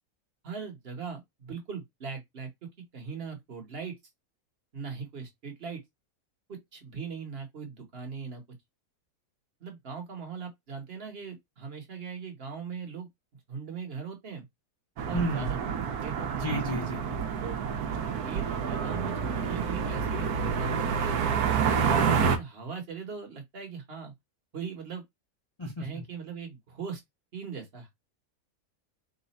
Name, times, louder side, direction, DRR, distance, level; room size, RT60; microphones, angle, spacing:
voice 1, 0.4-3.9 4.7-5.8 6.7-8.4 9.6-13.1 13.5-14.4 15.1-15.7 16.0-16.5 17.4-17.6 17.9-21.2 21.5-24.1 24.5-25.0 25.8-27.0 27.3-27.9, right 6 dB, 40° right, 1.3 m, -40 dB
sound 1, 15.0-22.4, right 6 dB, 75° right, 1.2 m, -28 dB
voice 2, 15.1-15.5 16.4-17.1 25.6-26.0, equal, 20° left, 0.9 m, -32 dB
4.0 x 2.4 x 4.1 m
omnidirectional pair, 1.7 m